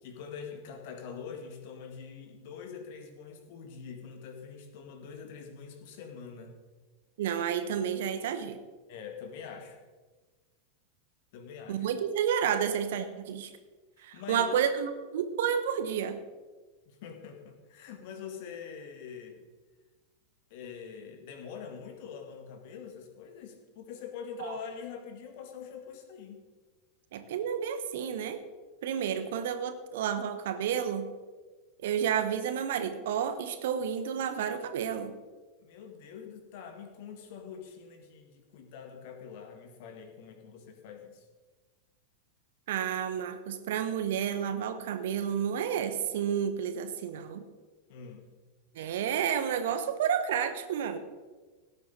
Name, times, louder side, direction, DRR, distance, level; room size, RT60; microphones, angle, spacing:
voice 1, 0.0-6.6 8.9-9.8 11.3-11.9 14.0-14.5 16.9-19.4 20.5-26.4 35.6-41.3 47.9-48.3, left 6 dB, 50° left, 5 dB, 2.1 m, -44 dB
voice 2, 7.2-8.6 11.7-13.5 14.0-16.2 24.4-24.6 27.1-28.4 28.8-31.1 31.8-35.1 42.7-47.4 48.7-51.0, right 8 dB, 55° right, 10 dB, 1.1 m, -30 dB
17.0 x 10.5 x 4.1 m, 1.3 s
figure-of-eight pair, 90°, 0 cm